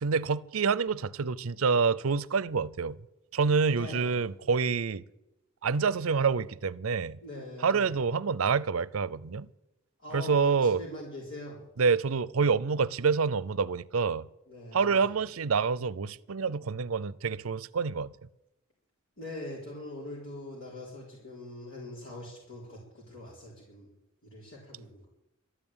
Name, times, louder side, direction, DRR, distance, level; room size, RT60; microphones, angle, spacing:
voice 1, 0.0-3.0 3.3-5.0 5.6-7.2 7.6-9.5 10.1-10.8 11.8-14.3 14.7-18.1, right 5 dB, 75° right, 0.6 m, -27 dB
voice 2, 3.7-4.2 7.2-8.0 10.0-11.6 14.5-15.1 19.2-23.9 24.2-25.1, left 1 dB, 65° left, 4.1 m, -43 dB
13.0 x 11.0 x 8.9 m
head